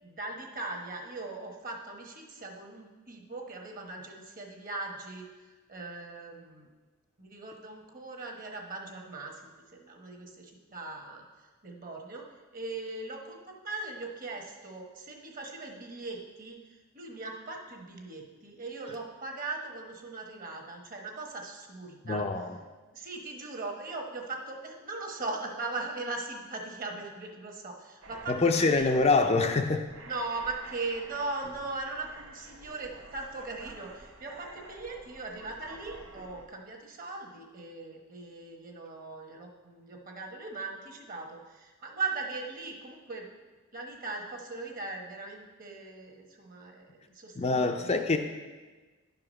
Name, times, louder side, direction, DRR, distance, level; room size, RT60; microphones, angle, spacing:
voice 1, 0.0-5.2 5.7-6.7 7.2-9.4 9.7-11.2 11.6-12.3 12.5-16.6 16.9-22.2 22.9-28.8 30.1-43.3 43.7-48.0, right 3 dB, 40° right, 2 dB, 1.1 m, -39 dB
voice 2, 22.0-22.5 28.3-29.9 47.4-48.2, left 3 dB, 30° left, 5 dB, 0.4 m, -25 dB
sound 1, 28.0-36.5, right 2 dB, 70° right, 1.0 m, -50 dB
10.5 x 4.8 x 6.3 m, 1.3 s
head